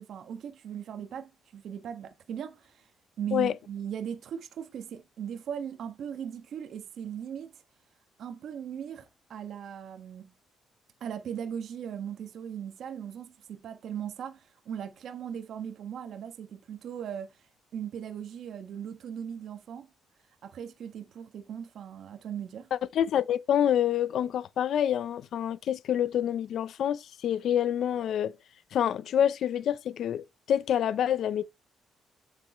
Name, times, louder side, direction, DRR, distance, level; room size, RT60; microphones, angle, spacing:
voice 1, 0.0-2.9 3.2-7.6 8.2-10.3 11.0-17.5 17.7-19.9 20.4-22.7, right 8 dB, 70° right, 1.6 m, -38 dB
voice 2, 22.7-28.4 28.7-31.4, left 10 dB, 70° left, 0.7 m, -27 dB
8.3 x 8.2 x 3.1 m
cardioid pair, 90°, 0 cm